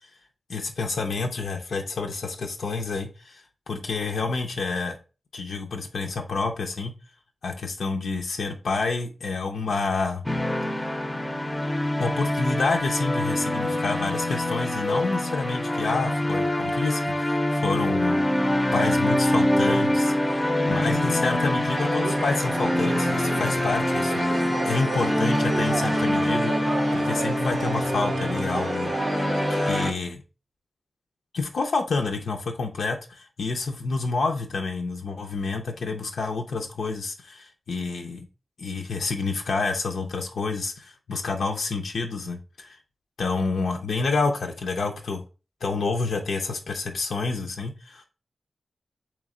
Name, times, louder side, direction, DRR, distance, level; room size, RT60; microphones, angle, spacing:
voice 1, 0.5-5.0 5.3-6.9 7.4-10.2 12.0-18.3 18.7-26.5 26.9-28.9 29.5-30.2 31.3-38.3 38.6-42.8 43.2-45.2 45.6-48.0, left 4 dB, 85° left, 3 dB, 0.5 m, -28 dB
sound 1, 10.3-29.9, left 1 dB, 15° left, 0.5 m, -25 dB
sound 2, 21.7-29.9, right 4 dB, 80° right, 0.5 m, -33 dB
3.4 x 3.1 x 3.6 m, 0.33 s
wide cardioid pair, 100°, 0 cm